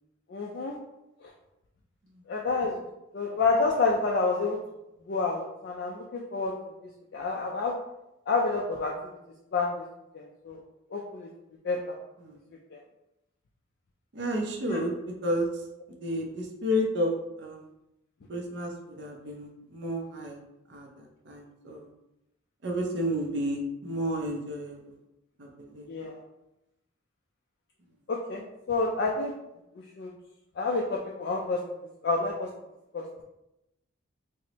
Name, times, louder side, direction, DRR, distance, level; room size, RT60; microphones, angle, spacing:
voice 1, 0.3-0.8 1.2-1.3 2.3-2.8 3.1-4.6 5.1-6.5 7.1-7.7 8.3-8.9 9.5-9.7 10.1-10.6 10.9-11.3 11.6-11.8 12.7-12.8 14.7-14.8 25.9-26.2 28.1-29.3 30.0-30.1 30.6-31.6 32.0-32.5 32.9-33.0, left 3 dB, 55° left, -1 dB, 0.3 m, -28 dB
voice 2, 14.1-14.9 15.2-15.5 16.0-17.1 17.4-17.6 18.3-20.4 20.7-20.9 21.3-21.9 22.6-24.8 25.4-25.9, equal, 55° right, 0 dB, 0.5 m, -31 dB
4.3 x 2.0 x 2.8 m, 0.91 s
head